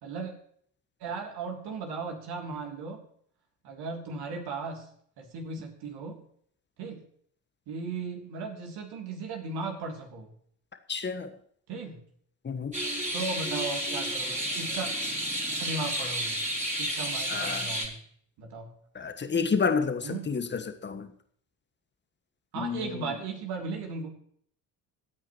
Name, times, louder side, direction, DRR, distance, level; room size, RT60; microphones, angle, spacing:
voice 1, 0.0-0.3 1.0-3.0 3.6-4.9 5.2-6.2 6.8-7.0 7.7-10.3 11.7-12.0 13.1-14.9 15.6-16.4 16.8-18.0 18.4-18.7 20.0-20.3 22.5-24.1, right 3 dB, 50° right, 2 dB, 3.2 m, -36 dB
voice 2, 10.9-11.3 12.4-12.8 17.3-17.7 18.9-21.1 22.6-23.0, left 5 dB, 20° left, 8 dB, 1.4 m, -30 dB
sound 1, 12.7-17.9, right 1 dB, 15° right, 4.0 m, -31 dB
25.0 x 9.0 x 3.2 m, 0.62 s
figure-of-eight pair, 55°, 49 cm